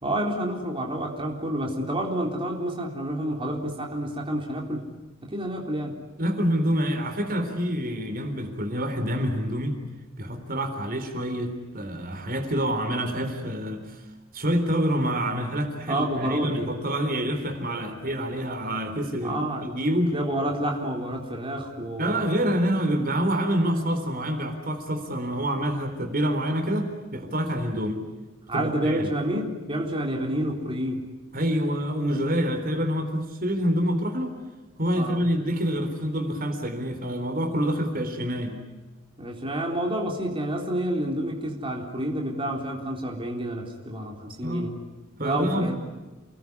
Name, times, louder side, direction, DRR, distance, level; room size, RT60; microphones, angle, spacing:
voice 1, 0.0-4.9 5.2-6.0 15.9-16.7 19.2-19.7 20.1-22.2 28.5-31.0 35.0-35.2 39.2-44.8 45.2-45.8, right 1 dB, 25° right, 0 dB, 3.8 m, -29 dB
voice 2, 6.2-9.8 10.2-14.0 14.3-20.1 22.0-28.0 28.5-29.1 31.3-34.3 34.8-38.6 44.4-44.7 45.2-45.8, equal, 45° right, 6 dB, 3.8 m, -27 dB
29.5 x 20.0 x 9.7 m, 1.2 s
head